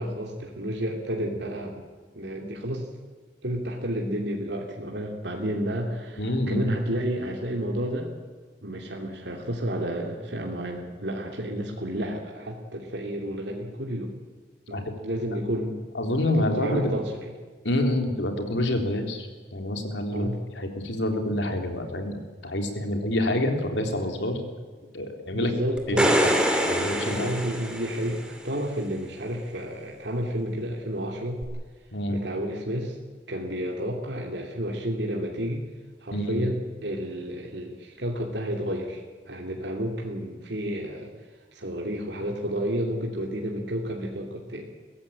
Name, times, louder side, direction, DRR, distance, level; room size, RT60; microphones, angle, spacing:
voice 1, 0.0-1.8 2.1-2.9 3.4-8.1 8.6-14.1 14.7-15.8 16.1-17.3 20.1-20.4 25.3-26.2 27.1-31.4 32.1-33.0 33.3-35.7 36.0-41.1 41.5-44.7, equal, 70° right, 0 dB, 2.7 m, -31 dB
voice 2, 6.2-6.7 14.7-14.8 15.9-16.9 17.6-20.3 20.6-22.2 22.4-24.4 24.9-25.5 25.9-26.1 26.7-27.3 31.9-32.2 36.1-36.4, left 1 dB, 85° left, 4 dB, 3.6 m, -27 dB
sound 1, 25.8-28.3 31.4-31.5, right 1 dB, 5° right, 2.9 m, -24 dB
22.5 x 16.0 x 8.8 m, 1.4 s
head